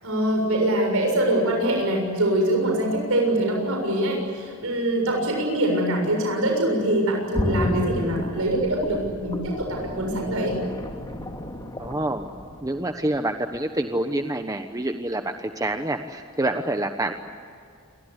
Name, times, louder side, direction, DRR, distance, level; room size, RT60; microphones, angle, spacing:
voice 1, 0.0-10.6, right 1 dB, 70° right, 1 dB, 7.0 m, -23 dB
sound 1, 7.3-13.1 13.5-13.6, equal, 20° left, 2.7 m, -32 dB
voice 2, 11.8-12.3 12.6-17.1, right 1 dB, 15° right, 6 dB, 1.1 m, -27 dB
28.5 x 23.5 x 8.3 m, 2.3 s
head